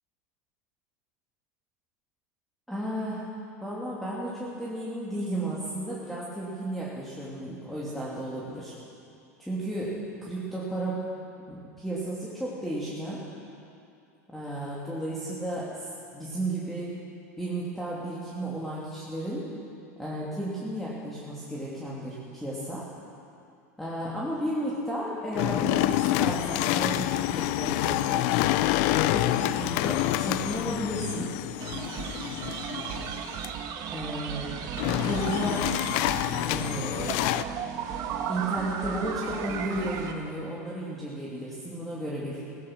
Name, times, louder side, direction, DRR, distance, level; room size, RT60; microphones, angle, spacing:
voice 1, 2.7-3.3 3.6-8.8 9.4-11.0 11.5-13.3 14.3-17.0 17.4-19.5 20.0-22.9 23.8-28.3 29.1-31.3 33.9-34.6 34.8-35.7 36.4-37.6 38.3-42.4, right 1 dB, ahead, -7 dB, 2.9 m, -33 dB
sound 1, 25.3-33.5 34.8-37.4, left 15 dB, 60° left, 0.5 m, -27 dB
sound 2, 31.6-40.1, right 7 dB, 50° right, 1.5 m, -35 dB
17.0 x 13.5 x 6.1 m, 2.5 s
hypercardioid pair, 100°, 9 cm